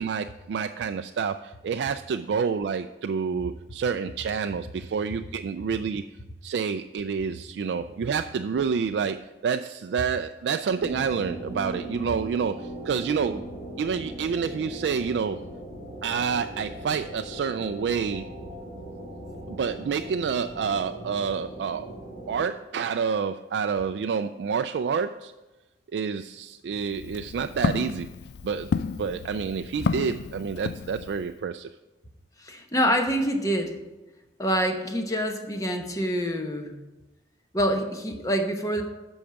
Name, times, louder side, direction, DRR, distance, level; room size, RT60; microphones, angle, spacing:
voice 1, 0.0-6.0 6.4-13.5 13.8-15.4 16.0-18.3 19.5-21.9 22.3-25.3 25.9-28.1 28.4-28.7 29.0-31.7, right 6 dB, 80° right, 8 dB, 0.3 m, -28 dB
sound 1, 10.8-22.4, right 1 dB, 45° left, 3.3 m, -39 dB
Walk footsteps, 26.8-31.3, left 5 dB, 70° left, 0.3 m, -31 dB
voice 2, 32.4-33.8 34.4-36.8 37.5-38.8, equal, 20° left, 4 dB, 0.9 m, -26 dB
8.7 x 6.3 x 5.8 m, 1.1 s
head